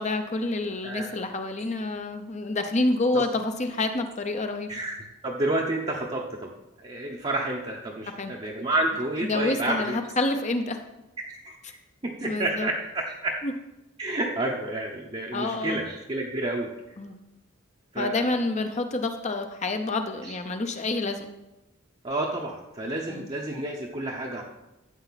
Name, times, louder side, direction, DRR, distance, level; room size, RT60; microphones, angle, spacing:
voice 1, 0.0-4.7 8.2-8.3 9.3-10.8 12.2-12.7 13.4-13.5 15.3-15.8 17.0-17.2 18.0-21.3 23.1-23.3, left 2 dB, 35° left, 6 dB, 0.7 m, -28 dB
voice 2, 5.2-6.5 6.8-10.0 11.2-11.8 12.0-13.4 14.0-16.7 17.9-18.3 20.2-20.4 22.0-24.4, right 2 dB, 30° right, -3 dB, 0.9 m, -30 dB
13.0 x 7.8 x 4.1 m, 0.99 s
head